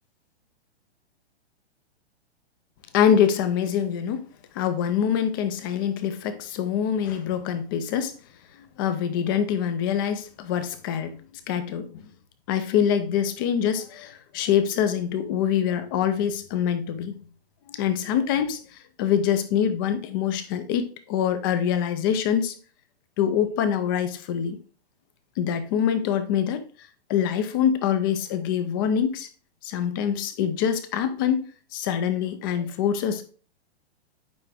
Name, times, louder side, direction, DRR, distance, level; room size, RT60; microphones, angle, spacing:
voice 1, 2.9-4.3 4.5-8.1 8.6-11.1 11.5-12.1 12.5-17.1 17.7-18.7 19.0-22.5 23.2-24.6 25.4-26.6 27.1-29.3 29.6-33.2, left 8 dB, 20° left, 0.4 m, -25 dB
9.1 x 3.3 x 3.5 m
hypercardioid pair, 155°, 34 cm